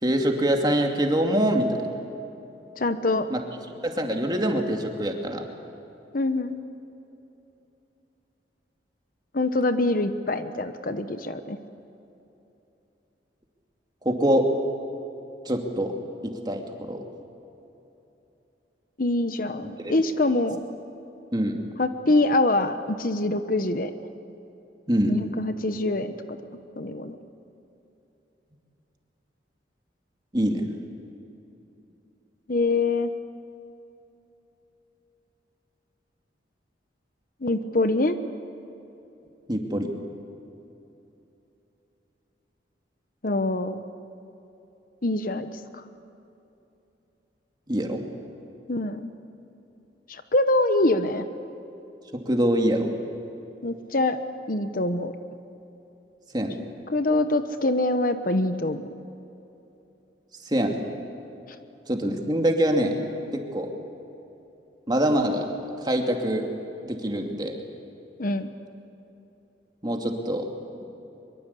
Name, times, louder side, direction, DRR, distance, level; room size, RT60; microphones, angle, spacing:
voice 1, 0.0-1.7 3.3-3.4 3.8-5.4 14.0-14.5 15.5-15.9 16.2-17.0 19.6-19.9 21.3-21.6 24.9-25.1 30.3-30.6 39.5-39.9 47.7-48.0 52.1-52.9 56.3-56.6 60.5-60.7 61.9-62.9 63.3-63.7 64.9-65.5 65.8-66.5 66.8-67.5 69.8-70.5, right 1 dB, 25° right, 3 dB, 2.6 m, -24 dB
voice 2, 2.8-3.3 6.1-6.6 9.3-11.6 19.0-20.6 21.8-23.9 25.1-26.4 26.8-27.2 32.5-33.1 37.4-38.2 43.2-43.8 45.0-45.8 48.7-49.1 50.1-51.3 53.6-54.2 54.5-55.1 56.9-58.8 68.2-68.5, left 2 dB, 50° left, 10 dB, 1.1 m, -24 dB
24.0 x 23.5 x 8.4 m, 3.0 s
head